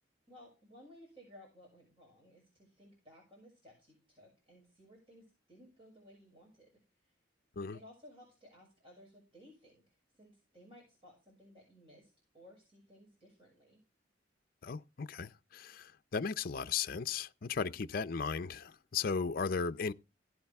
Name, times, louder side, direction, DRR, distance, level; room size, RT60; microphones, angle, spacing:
voice 1, 0.3-7.1 7.7-9.8 10.1-13.8, equal, 30° right, 6.1 m, -59 dB
voice 2, 14.6-15.8 16.1-19.9, left 5 dB, 55° left, 0.5 m, -36 dB
16.5 x 8.9 x 3.5 m
head